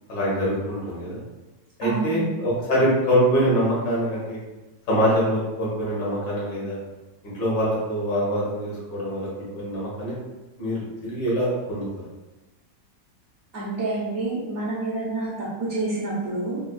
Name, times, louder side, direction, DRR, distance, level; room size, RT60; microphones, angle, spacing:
voice 1, 0.1-1.2 1.8-4.4 4.9-6.8 7.2-10.1 10.6-11.9, equal, 70° left, -6 dB, 1.8 m, -24 dB
voice 2, 1.8-2.4 13.5-16.6, right 2 dB, 55° right, -10 dB, 1.2 m, -28 dB
4.2 x 2.5 x 2.3 m, 1.1 s
omnidirectional pair, 2.0 m